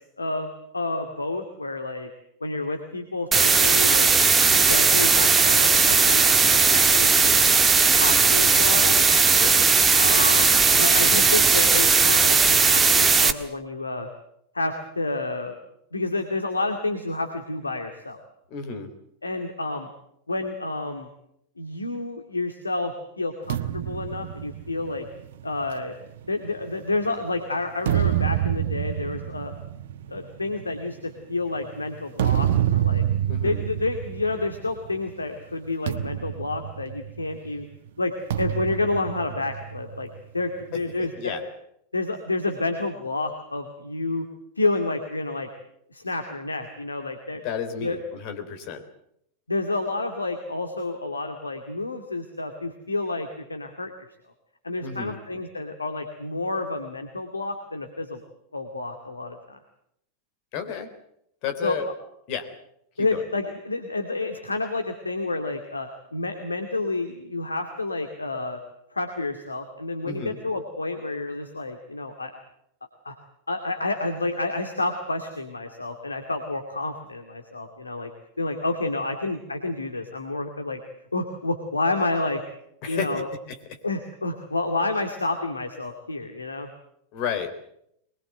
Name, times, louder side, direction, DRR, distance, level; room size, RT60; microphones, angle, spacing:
voice 1, 0.2-2.1 2.4-4.1 4.5-7.5 7.9-9.0 10.0-14.1 14.5-15.5 15.9-18.2 19.2-19.9 20.3-21.1 21.6-25.0 25.4-25.9 26.3-29.5 30.1-33.0 33.4-37.7 38.0-40.1 40.3-41.5 41.9-44.2 44.6-45.5 45.9-47.4 47.8-48.0 49.5-53.9 54.6-58.2 58.5-59.6 61.6-61.8 63.0-68.6 68.9-72.3 73.0-73.1 73.5-78.1 78.4-80.8 81.1-82.4 82.9-83.3 83.8-86.7, left 2 dB, 80° left, 5 dB, 2.2 m, -29 dB
sound 1, 3.3-13.3, right 5 dB, 15° right, 1.5 m, -18 dB
voice 2, 18.5-18.9 33.3-33.6 41.0-41.4 47.4-48.8 54.8-55.2 60.5-60.9 61.4-61.9 62.3-62.5 63.1-63.2 70.0-70.4 82.8-83.2 83.5-83.8 87.1-87.5, left 7 dB, 45° left, 8 dB, 3.7 m, -32 dB
sound 2, 23.5-27.1 27.6-35.0 35.3-35.5 35.9-37.5 38.3-40.1, right 11 dB, 55° right, 1.1 m, -28 dB
23.5 x 21.0 x 7.9 m, 0.76 s
figure-of-eight pair, 90°, 0 cm